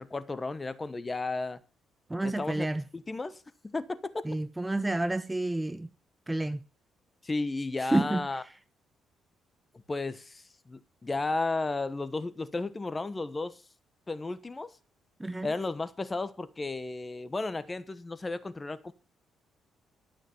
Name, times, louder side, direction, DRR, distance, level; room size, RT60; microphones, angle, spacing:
voice 1, 0.0-1.6 2.2-2.7 2.9-4.1 7.2-8.4 9.9-13.6 14.1-14.8 15.4-18.9, left 3 dB, 25° left, 1.1 m, -34 dB
voice 2, 2.1-2.8 4.2-5.9 6.3-6.6 7.9-8.2 15.2-15.5, right 2 dB, 10° right, 0.7 m, -29 dB
12.5 x 6.5 x 7.9 m
cardioid pair, 90°, 0 cm